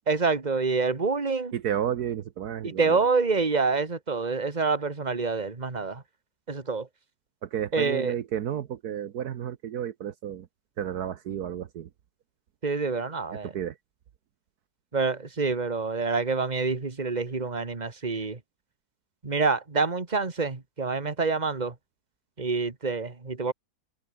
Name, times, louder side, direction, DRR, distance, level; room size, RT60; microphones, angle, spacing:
voice 1, 0.1-1.5 2.6-6.0 6.5-6.9 7.7-8.1 12.6-13.5 14.9-18.4 19.2-21.7 22.4-23.5, right 4 dB, 25° right, 2.1 m, -27 dB
voice 2, 1.5-3.1 7.4-10.5 10.8-11.9 13.4-13.8, right 9 dB, 70° right, 1.5 m, -32 dB
omnidirectional pair, 1.8 m